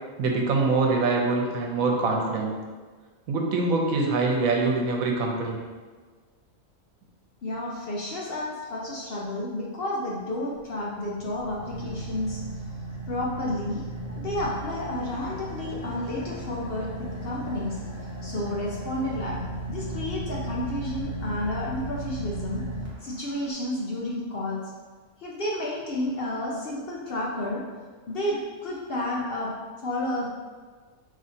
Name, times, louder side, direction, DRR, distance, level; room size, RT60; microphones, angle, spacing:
voice 1, 0.2-2.5 3.3-5.6, right 3 dB, 85° right, 0 dB, 1.1 m, -24 dB
voice 2, 7.4-12.4 13.1-17.8 18.2-19.4 19.7-22.6 23.0-24.6 25.2-27.7 28.1-29.5 29.8-30.3, left 1 dB, 60° left, -4 dB, 0.7 m, -31 dB
Car / Idling, 10.6-23.5, right 1 dB, 15° right, 0.6 m, -36 dB
5.4 x 3.1 x 2.7 m, 1.5 s
omnidirectional pair, 1.4 m